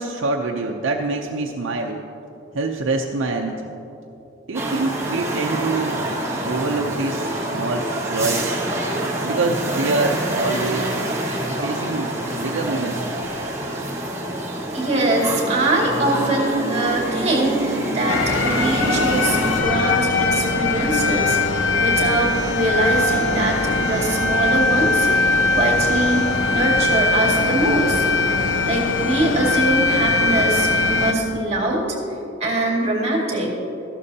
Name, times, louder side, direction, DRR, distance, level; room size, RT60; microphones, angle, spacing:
voice 1, 0.0-2.1 2.5-3.7 4.5-6.0 6.5-8.6 9.2-11.0 11.6-13.0, right 3 dB, 80° right, 1 dB, 0.6 m, -25 dB
sound 1, 4.5-19.6, right 1 dB, 15° right, 1.1 m, -26 dB
voice 2, 14.7-25.1 25.5-28.1 28.6-31.8 32.4-33.6, right 1 dB, 30° right, -2 dB, 2.2 m, -22 dB
sound 2, 18.1-31.1, left 3 dB, 85° left, 0.7 m, -21 dB
14.0 x 12.0 x 2.8 m, 2.9 s
head